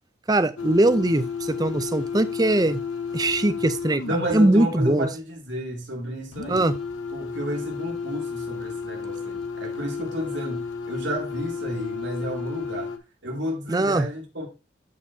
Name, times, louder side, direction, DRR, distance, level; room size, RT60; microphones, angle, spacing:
voice 1, 0.3-2.8 3.1-4.0 4.3-5.1 6.5-6.8 13.7-14.1, right 2 dB, 20° right, 0.5 m, -21 dB
sound 1, 0.6-4.4 6.3-13.0, left 5 dB, 90° left, 1.0 m, -32 dB
voice 2, 4.0-6.7 7.1-12.9 13.2-14.5, equal, 70° right, 2.5 m, -31 dB
12.5 x 4.5 x 2.7 m
head